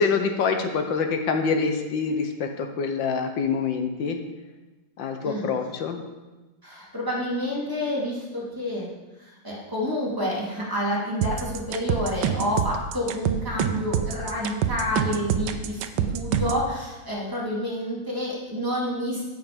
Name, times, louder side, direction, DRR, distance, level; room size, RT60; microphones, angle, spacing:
voice 1, 0.0-4.2 5.0-6.0, left 5 dB, 70° left, 5 dB, 1.8 m, -25 dB
voice 2, 6.6-8.9 9.2-19.2, left 1 dB, 10° right, -6 dB, 2.8 m, -29 dB
sound 1, 11.2-16.7, right 9 dB, 80° right, 1.4 m, -26 dB
16.0 x 5.9 x 5.2 m, 1.2 s
omnidirectional pair, 2.2 m